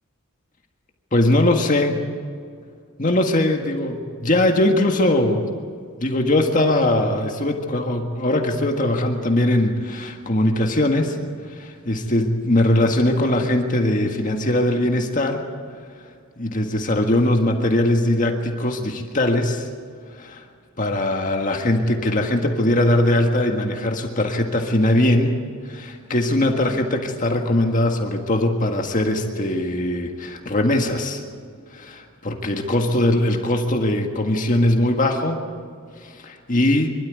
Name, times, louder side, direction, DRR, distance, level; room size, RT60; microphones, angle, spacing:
voice 1, 1.1-2.0 3.0-5.5 6.0-11.2 11.5-15.4 16.4-19.7 20.2-20.4 20.8-25.4 25.6-31.2 31.7-35.4 36.0-36.9, left 1 dB, 40° left, 3 dB, 1.7 m, -20 dB
24.5 x 13.0 x 9.4 m, 2.1 s
head